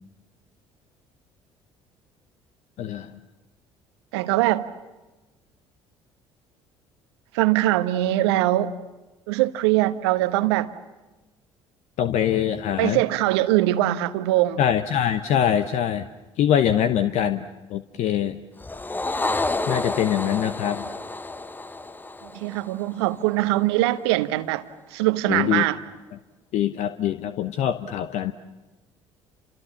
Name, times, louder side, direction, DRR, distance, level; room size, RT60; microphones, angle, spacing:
voice 1, 2.8-3.1 12.0-13.0 14.6-16.0 16.4-18.4 19.7-20.8 25.3-25.7 26.5-28.3, left 10 dB, 55° left, 1.0 m, -23 dB
voice 2, 4.1-4.6 7.3-8.8 9.3-10.7 12.8-14.6 22.2-25.8, right 16 dB, 70° right, 1.0 m, -22 dB
sound 1, 18.6-23.2, left 2 dB, 15° left, 0.8 m, -30 dB
30.0 x 27.0 x 7.2 m
figure-of-eight pair, 55°, 14 cm